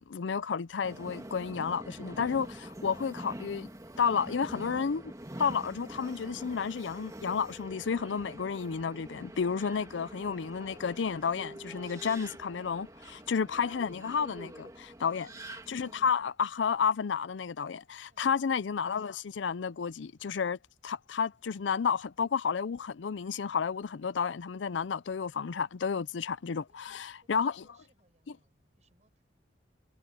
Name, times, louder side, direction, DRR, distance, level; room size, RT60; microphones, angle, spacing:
voice 1, 0.0-3.7 4.0-5.1 5.4-15.3 15.7-20.6 20.8-27.5, left 6 dB, 85° left, 0.5 m, -31 dB
Subway metro underground, 0.8-16.1, right 1 dB, 20° right, 2.3 m, -46 dB
voice 2, 15.1-15.6 18.1-18.5 26.2-26.3 26.7-29.2, right 1 dB, 40° right, 7.7 m, -71 dB
head